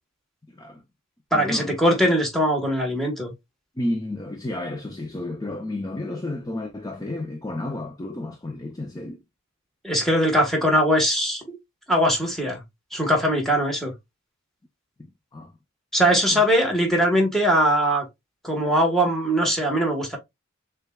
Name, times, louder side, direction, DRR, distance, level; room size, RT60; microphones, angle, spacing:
voice 1, 0.5-0.8 1.3-1.8 3.8-9.2 15.0-15.5 16.3-16.4, left 1 dB, 20° left, 0.5 m, -32 dB
voice 2, 1.3-3.3 9.8-11.6 11.9-12.6 12.9-13.9 15.9-18.0 18.4-20.2, equal, ahead, 1.2 m, -21 dB
6.4 x 2.3 x 2.2 m
head